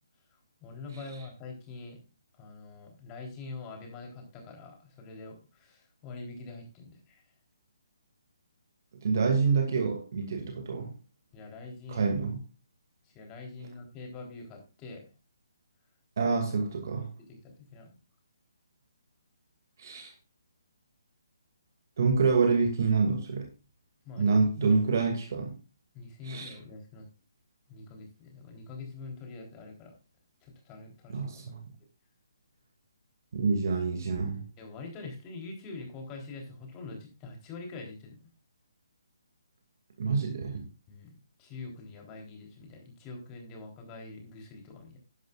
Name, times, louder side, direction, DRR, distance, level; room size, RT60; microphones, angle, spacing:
voice 1, 0.6-2.0 2.4-7.2 11.3-12.1 13.0-15.1 16.3-16.4 17.2-18.0 24.0-24.4 25.9-27.1 27.7-30.0 30.4-31.3 34.6-38.3 40.9-45.0, left 3 dB, 20° left, 3.8 m, -44 dB
voice 2, 9.0-10.9 11.9-12.4 16.2-17.1 19.8-20.1 22.0-23.5 24.2-25.6 26.2-26.5 31.1-31.6 33.3-34.4 40.0-40.7, right 4 dB, 55° right, 2.4 m, -27 dB
13.0 x 10.5 x 2.5 m
figure-of-eight pair, 145°, 2 cm